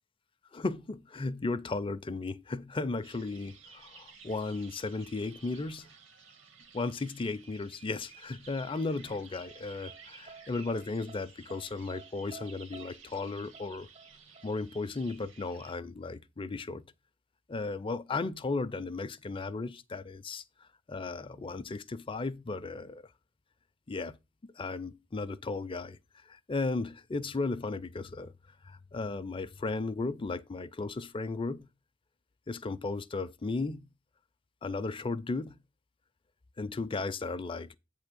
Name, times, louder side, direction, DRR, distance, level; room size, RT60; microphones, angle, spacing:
voice 1, 0.5-5.9 6.7-13.9 14.4-16.9 17.5-20.4 20.9-23.0 23.9-24.2 24.6-26.0 26.3-28.3 28.6-31.7 32.5-33.9 34.6-35.6 36.6-37.8, left 3 dB, 25° left, 0.5 m, -35 dB
sound 1, 3.0-15.8, right 5 dB, 70° right, 1.4 m, -54 dB
sound 2, 8.7-14.5, right 4 dB, 30° right, 0.5 m, -52 dB
8.5 x 3.5 x 6.6 m
head